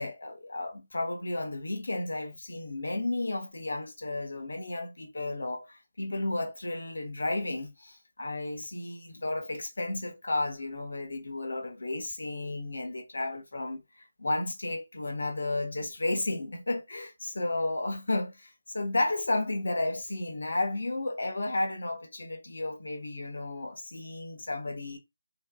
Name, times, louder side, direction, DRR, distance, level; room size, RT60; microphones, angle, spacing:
voice 1, 0.0-25.0, left 2 dB, 65° left, 1.0 m, -33 dB
4.4 x 2.9 x 2.3 m
figure-of-eight pair, 150°, 0 cm